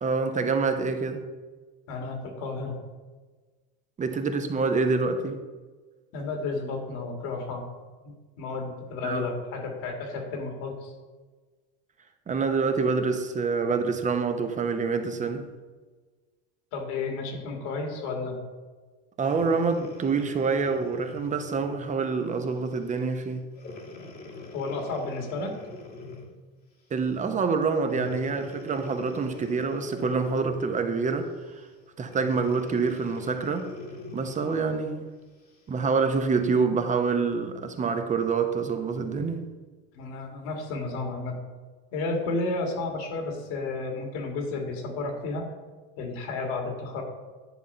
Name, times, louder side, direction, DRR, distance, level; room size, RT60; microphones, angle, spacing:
voice 1, 0.0-1.2 4.0-5.4 9.0-9.3 12.3-15.5 19.2-23.5 26.9-31.6 32.0-33.7 34.1-35.1 35.7-39.4, right 4 dB, 25° right, 0.8 m, -26 dB
voice 2, 1.9-2.8 6.1-7.6 8.0-10.9 16.7-18.4 24.5-25.5 39.9-41.4 41.9-45.5 46.0-47.0, left 3 dB, 65° left, 1.9 m, -32 dB
Breathing, 19.2-21.9 22.5-22.7 23.6-26.4 27.9-30.7 32.1-34.9 35.5-35.6, left 2 dB, 30° left, 1.3 m, -43 dB
10.0 x 3.7 x 5.5 m
supercardioid pair, 105°, 31 cm